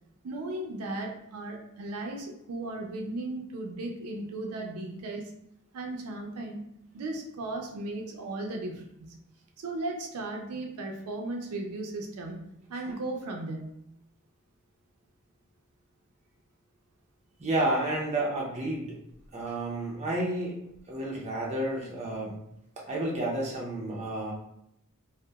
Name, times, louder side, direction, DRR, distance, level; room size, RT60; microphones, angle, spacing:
voice 1, 0.2-5.3 5.7-6.6 6.9-9.2 9.6-13.7, right 2 dB, 85° right, 2 dB, 0.4 m, -36 dB
voice 2, 17.4-19.0 19.3-20.6 20.9-22.4 22.8-24.3, right 1 dB, 30° right, -3 dB, 0.5 m, -30 dB
2.8 x 2.0 x 2.2 m, 0.77 s
head